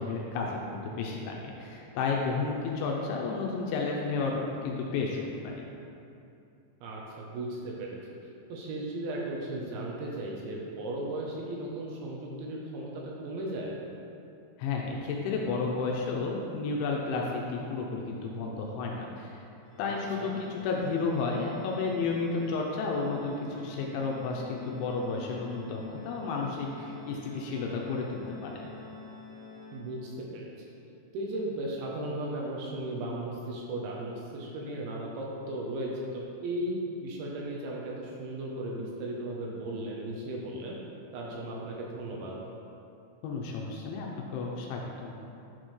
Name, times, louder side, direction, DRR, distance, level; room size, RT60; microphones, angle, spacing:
voice 1, 0.0-5.7 14.6-19.4 19.8-28.7 43.2-45.2, left 4 dB, 80° left, -1 dB, 2.8 m, -32 dB
voice 2, 6.8-8.0 8.5-13.8 19.8-20.4 29.7-30.5 31.1-40.8 41.1-42.4, right 1 dB, 75° right, -3 dB, 3.0 m, -36 dB
Organ, 19.7-30.4, left 2 dB, 50° left, 2.9 m, -48 dB
10.5 x 6.4 x 3.2 m, 2.7 s
omnidirectional pair, 5.8 m